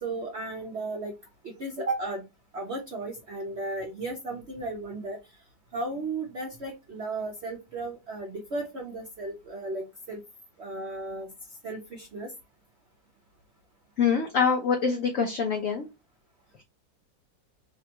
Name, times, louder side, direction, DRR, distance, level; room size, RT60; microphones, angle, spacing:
voice 1, 0.0-1.1 1.4-2.2 2.5-5.2 5.7-10.2 10.6-11.3 11.6-12.3, right 2 dB, 65° right, 0 dB, 0.6 m, -35 dB
voice 2, 14.0-15.9, left 6 dB, 75° left, 4 dB, 0.7 m, -25 dB
3.4 x 2.3 x 2.7 m, 0.23 s
omnidirectional pair, 2.0 m